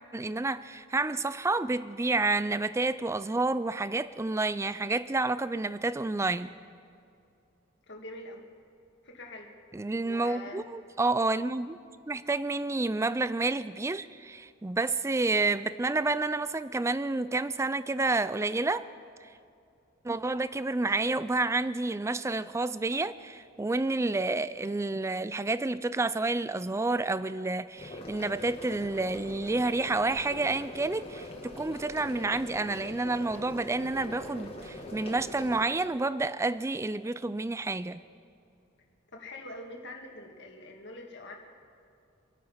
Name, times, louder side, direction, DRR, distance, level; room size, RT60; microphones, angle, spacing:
voice 1, 0.1-6.5 9.7-11.8 12.1-18.9 19.2-19.3 20.0-38.0, right 3 dB, 15° right, 15 dB, 0.3 m, -29 dB
voice 2, 7.9-8.4 9.0-9.5 10.0-10.7 39.1-41.3, left 2 dB, 60° left, 1 dB, 2.1 m, -44 dB
sound 1, 27.8-35.6, left 1 dB, 30° left, 1.9 m, -43 dB
26.0 x 9.2 x 5.6 m, 2.5 s
head